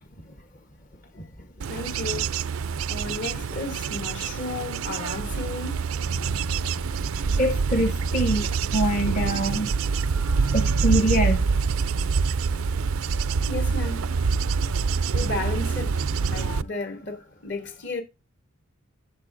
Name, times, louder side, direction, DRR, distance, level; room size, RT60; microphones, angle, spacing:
Bird / Insect / Wind, 1.6-16.6, right 5 dB, 75° right, 0.5 m, -26 dB
voice 1, 1.7-2.3 2.9-5.9 9.7-10.7 13.5-18.0, left 2 dB, 55° left, 2.7 m, -35 dB
voice 2, 7.4-9.7 10.5-11.4 16.5-16.6, right 1 dB, 35° left, 1.1 m, -24 dB
17.0 x 6.9 x 2.6 m
head